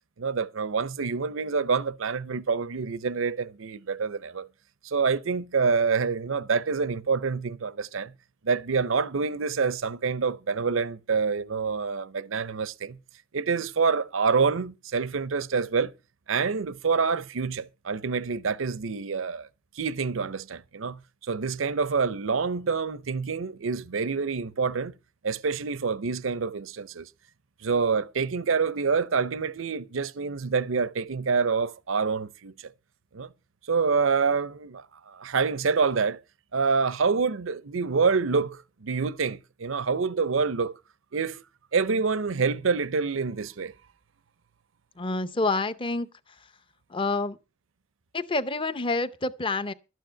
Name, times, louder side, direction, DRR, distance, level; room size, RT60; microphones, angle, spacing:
voice 1, 0.2-4.5 4.8-8.1 8.4-13.0 13.3-15.9 16.3-19.5 19.7-21.0 21.3-24.9 25.2-27.1 27.6-32.7 33.1-33.3 33.7-36.2 36.5-40.7 41.1-41.4 41.7-43.7, right 5 dB, 75° right, 0.7 m, -27 dB
voice 2, 45.0-46.1 46.9-47.4 48.1-49.7, left 3 dB, 25° left, 0.6 m, -28 dB
12.5 x 9.2 x 5.6 m
head